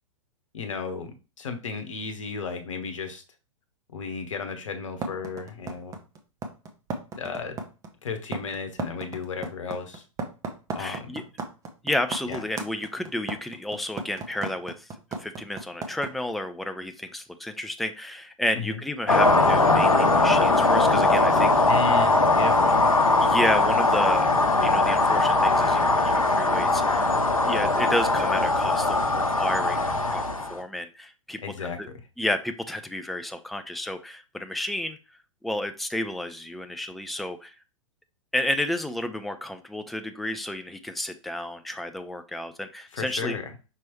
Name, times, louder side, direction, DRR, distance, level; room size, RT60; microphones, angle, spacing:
voice 1, 0.5-3.2 3.9-6.0 7.2-7.6 8.0-10.0 10.7-11.3 12.3-12.4 18.5-18.8 21.6-22.9 31.4-31.8 42.9-43.5, left 5 dB, 65° left, 6 dB, 1.0 m, -34 dB
sound 1, 5.0-16.1, right 4 dB, 20° right, 0.8 m, -34 dB
voice 2, 10.8-11.2 11.8-14.9 15.2-22.0 23.2-30.2 30.5-31.9 32.2-35.0 35.4-37.5 38.3-43.4, left 1 dB, ahead, 8 dB, 0.3 m, -31 dB
sound 2, 19.1-30.6, left 2 dB, 85° left, 0.7 m, -21 dB
5.6 x 3.0 x 3.1 m, 0.33 s
figure-of-eight pair, 100°, 17 cm